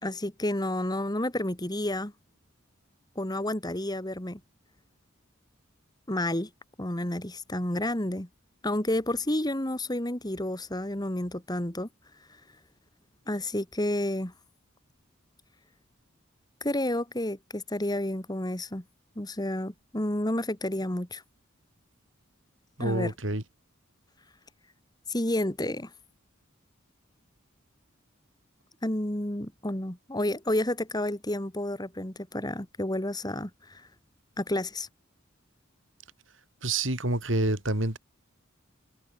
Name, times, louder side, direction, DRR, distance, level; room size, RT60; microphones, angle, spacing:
voice 1, 0.0-2.1 3.2-4.4 6.1-6.5 6.8-8.3 8.6-11.9 12.3-12.4 13.3-14.3 16.6-18.8 19.2-21.2 22.8-23.1 25.1-25.9 28.8-33.9 34.4-34.9, left 1 dB, 20° left, 2.5 m, -30 dB
voice 2, 22.8-23.4 36.6-38.0, right 2 dB, 65° right, 4.8 m, -27 dB
head